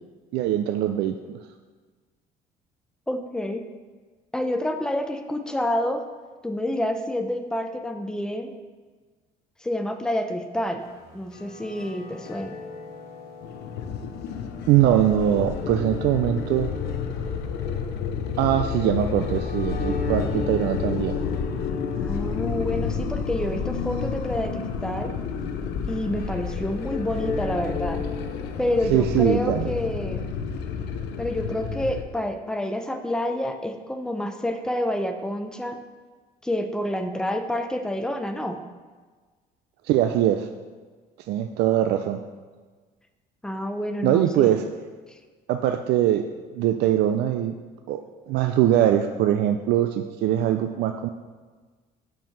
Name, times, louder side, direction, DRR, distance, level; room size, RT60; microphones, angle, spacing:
voice 1, 0.3-1.4 14.7-16.7 18.4-21.2 28.9-29.7 39.8-40.5 41.3-42.2 44.0-44.6 45.5-46.3 46.5-47.5 47.9-48.0 48.3-51.1, right 11 dB, 75° right, 7 dB, 0.4 m, -22 dB
voice 2, 3.1-3.6 4.3-6.0 6.4-8.5 9.6-10.8 11.1-12.5 22.0-25.1 25.9-28.0 28.6-30.3 31.2-35.8 36.4-38.6 43.4-44.5, left 1 dB, 5° left, 6 dB, 0.5 m, -28 dB
sound 1, 10.8-28.9, left 4 dB, 65° left, 1.0 m, -38 dB
sound 2, 13.4-32.0, left 6 dB, 85° left, 0.6 m, -30 dB
5.9 x 4.6 x 5.7 m, 1.4 s
cardioid pair, 110°, 17 cm